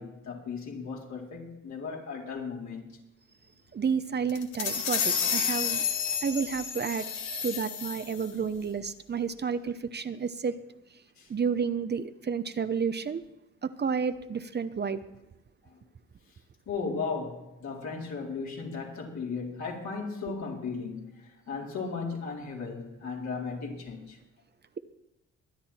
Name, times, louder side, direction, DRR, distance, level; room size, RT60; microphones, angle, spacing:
voice 1, 0.0-3.0 11.2-11.3 16.7-24.2, left 4 dB, 65° left, 4.3 m, -36 dB
voice 2, 3.7-5.8 6.2-7.0 7.4-10.6 11.3-13.2 13.6-15.0, right 6 dB, 35° right, 0.9 m, -30 dB
sound 1, 4.3-8.3, left 7 dB, 85° left, 1.9 m, -30 dB
24.0 x 9.7 x 4.4 m
cardioid pair, 90°, 30 cm